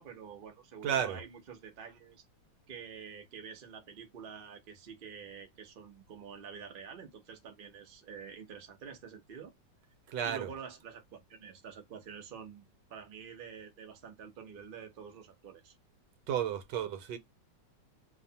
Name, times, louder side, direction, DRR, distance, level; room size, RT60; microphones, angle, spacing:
voice 1, 0.0-2.2 2.7-9.5 10.2-15.7, right 7 dB, 60° right, 0.5 m, -48 dB
voice 2, 0.8-1.2 10.1-10.5 16.3-17.2, right 9 dB, 80° right, 1.3 m, -32 dB
2.9 x 2.1 x 2.6 m
omnidirectional pair, 1.9 m